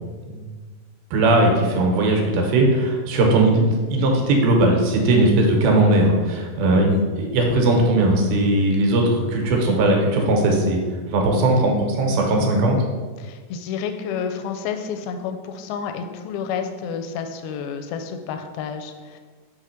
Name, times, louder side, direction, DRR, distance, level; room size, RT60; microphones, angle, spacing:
voice 1, 1.1-10.8 11.1-12.8, right 2 dB, 80° right, 1 dB, 2.7 m, -18 dB
voice 2, 13.2-19.2, left 6 dB, 85° left, 6 dB, 2.4 m, -30 dB
6.2 x 3.1 x 5.8 m, 1.4 s
omnidirectional pair, 4.2 m